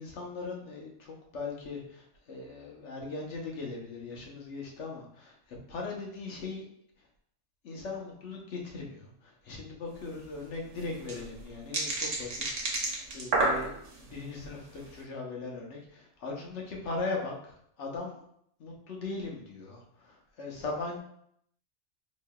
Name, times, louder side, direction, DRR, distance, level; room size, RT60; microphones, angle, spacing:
voice 1, 0.0-6.7 7.6-12.5 12.7-18.2 18.6-21.0, left 3 dB, 65° left, -1 dB, 1.2 m, -39 dB
sound 1, 9.9-10.0 10.2-10.3 10.8-14.0 14.6-14.9, right 2 dB, 70° right, 1.2 m, -30 dB
4.8 x 3.1 x 2.2 m, 0.70 s
omnidirectional pair, 1.3 m